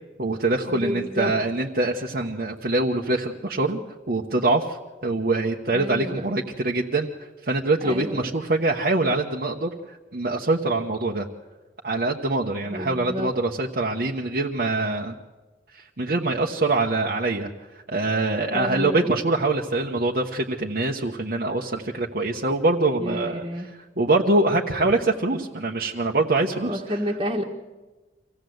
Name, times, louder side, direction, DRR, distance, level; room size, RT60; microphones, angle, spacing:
voice 1, 0.2-3.8 4.1-4.8 5.0-7.1 7.4-11.3 11.8-15.1 15.7-17.5 17.9-23.4 24.0-26.8, right 2 dB, 55° right, -1 dB, 1.1 m, -24 dB
voice 2, 0.7-1.3 5.7-6.4 7.8-8.3 12.7-13.3 18.5-19.1 23.0-23.7 26.6-27.4, equal, 30° right, -1 dB, 1.5 m, -30 dB
25.0 x 16.5 x 7.9 m, 1.2 s
head